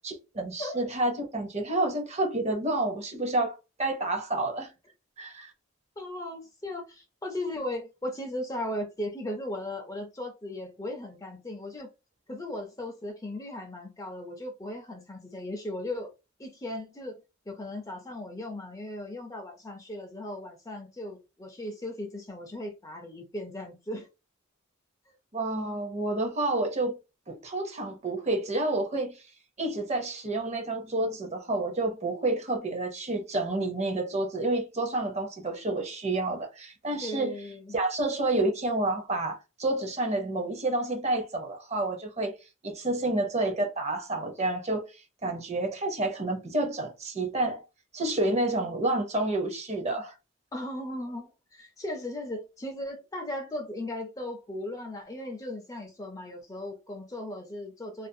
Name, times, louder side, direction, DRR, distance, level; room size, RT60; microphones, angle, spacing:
voice 1, 0.3-4.7 5.2-5.5 25.3-27.0 27.3-29.2 29.6-37.4 37.7-42.3 42.6-44.9 45.2-47.6 47.9-50.1, right 2 dB, 35° right, 0.6 m, -29 dB
voice 2, 6.0-11.9 12.3-16.1 16.4-17.2 17.5-24.1 37.0-37.8 50.5-58.1, left 1 dB, 15° left, 0.4 m, -37 dB
2.4 x 2.3 x 2.6 m
head